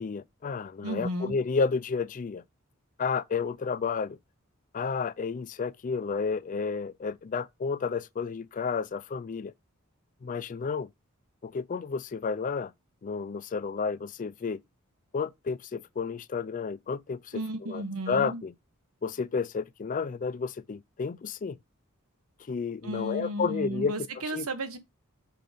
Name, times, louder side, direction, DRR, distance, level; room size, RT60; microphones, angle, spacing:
voice 1, 0.0-2.4 3.0-4.2 4.7-9.5 10.2-10.9 11.4-12.7 13.0-14.6 15.1-18.5 19.0-21.6 22.5-23.9 24.3-24.5, left 5 dB, 35° left, 0.4 m, -31 dB
voice 2, 0.8-1.3 17.3-18.4 22.8-24.8, right 1 dB, 80° right, 1.2 m, -34 dB
5.9 x 4.9 x 3.5 m
head